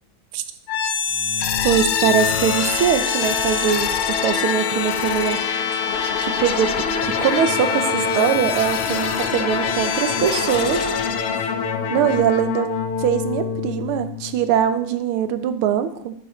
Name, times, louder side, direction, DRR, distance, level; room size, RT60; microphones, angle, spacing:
sound 1, 0.7-14.6, left 6 dB, 90° left, 1.7 m, -24 dB
voice 1, 1.6-5.4 6.2-10.9 11.9-12.7 13.0-16.1, right 9 dB, 85° right, 11 dB, 1.6 m, -22 dB
10.5 x 9.0 x 3.1 m, 0.68 s
omnidirectional pair, 2.3 m